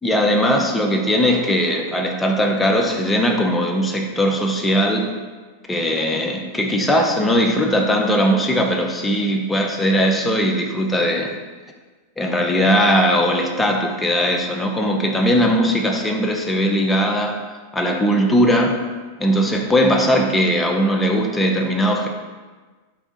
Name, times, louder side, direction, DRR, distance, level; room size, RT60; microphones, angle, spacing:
voice 1, 0.0-5.1 5.7-11.4 12.2-17.4 17.7-18.8 19.2-22.1, equal, 10° left, 1 dB, 0.4 m, -19 dB
3.4 x 2.4 x 3.8 m, 1.4 s
figure-of-eight pair, 90°, 0 cm